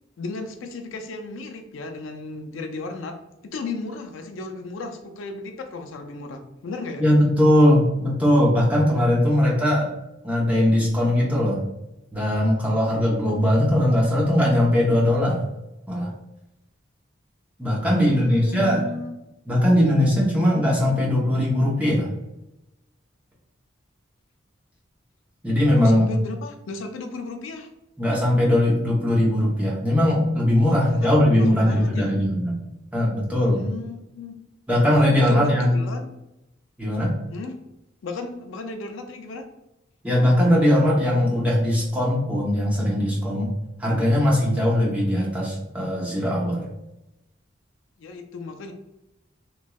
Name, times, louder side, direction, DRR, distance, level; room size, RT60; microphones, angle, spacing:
voice 1, 0.2-3.2 3.4-7.0 17.9-19.1 25.8-27.7 30.7-32.1 33.5-34.3 35.3-36.2 37.3-37.6 38.0-39.5 48.0-48.7, left 3 dB, 80° left, 5 dB, 0.4 m, -35 dB
voice 2, 7.0-9.9 10.2-11.6 12.1-15.4 15.9-16.1 17.6-18.8 19.5-22.1 25.4-26.1 28.0-32.6 32.9-33.6 34.7-35.8 36.8-37.1 40.0-43.5 43.8-46.7, left 1 dB, 5° right, -5 dB, 0.7 m, -20 dB
3.0 x 2.6 x 2.3 m, 0.91 s
head